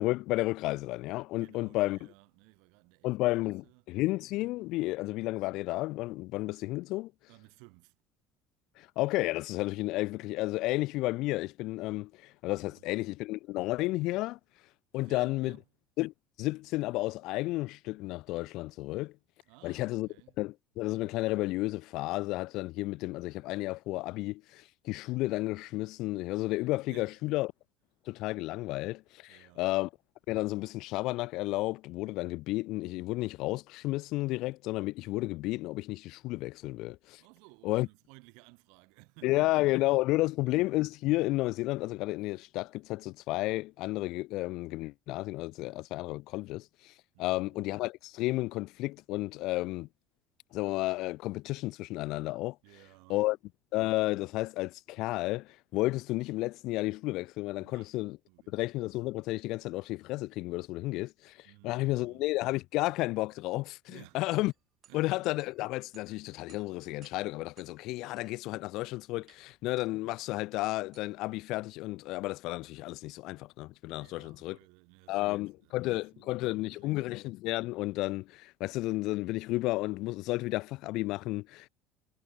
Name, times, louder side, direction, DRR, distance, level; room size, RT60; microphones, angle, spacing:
voice 1, 0.0-2.0 3.0-7.1 8.8-14.4 14.9-15.6 16.0-19.1 19.6-20.1 20.4-27.5 28.1-29.9 30.3-37.2 37.6-37.9 39.2-46.9 47.2-49.9 50.5-52.6 53.1-53.4 53.7-58.2 58.5-64.5 64.9-74.6 75.1-81.7, left 19 dB, 65° left, 0.4 m, -32 dB
voice 2, 1.4-3.1 3.4-3.8 7.3-8.0 12.6-13.0 14.9-15.6 19.5-20.4 26.9-27.2 29.3-29.8 37.2-39.9 47.1-47.6 52.6-53.2 57.6-57.9 58.3-58.6 61.4-62.2 63.9-64.2 64.9-65.1 74.0-77.2, right 34 dB, 80° right, 3.4 m, -57 dB
sound 1, 63.8-73.0, right 10 dB, 45° right, 5.7 m, -65 dB
supercardioid pair, 105°, 0 cm